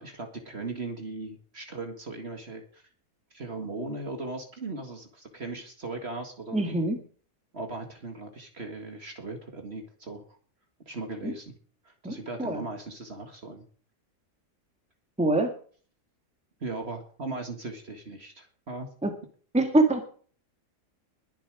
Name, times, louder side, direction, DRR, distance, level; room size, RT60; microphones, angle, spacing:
voice 1, 0.0-2.8 3.3-6.8 7.5-10.2 10.9-11.5 11.8-13.6 16.6-18.9, right 2 dB, 40° right, 4 dB, 2.1 m, -38 dB
voice 2, 6.5-7.0 11.2-11.3 12.0-12.1 12.4-12.6 15.2-15.5 19.0-19.1 19.5-20.1, right 2 dB, 5° right, 5 dB, 1.8 m, -24 dB
21.0 x 7.3 x 4.9 m, 0.43 s
omnidirectional pair, 1.7 m